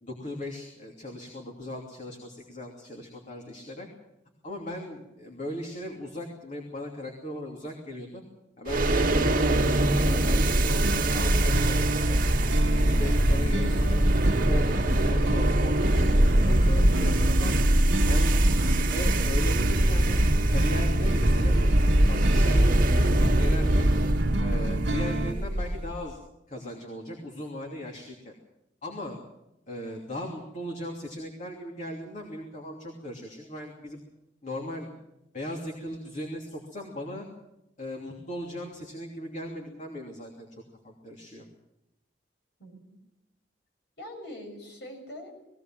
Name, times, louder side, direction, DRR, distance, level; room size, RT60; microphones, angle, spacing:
voice 1, 0.0-3.9 4.4-8.2 8.6-12.2 12.7-17.6 18.0-23.9 24.4-26.2 26.5-28.3 28.8-29.2 29.7-34.0 34.4-34.9 35.3-37.3 37.8-41.5, left 1 dB, 40° left, 0 dB, 3.0 m, -38 dB
sound 1, 8.7-26.0, right 1 dB, 50° right, 1.7 m, -23 dB
sound 2, 10.8-25.3, right 2 dB, 75° right, 1.1 m, -31 dB
voice 2, 42.6-43.0 44.0-45.3, equal, 60° left, 2 dB, 6.7 m, -43 dB
20.0 x 17.5 x 7.6 m, 0.88 s
head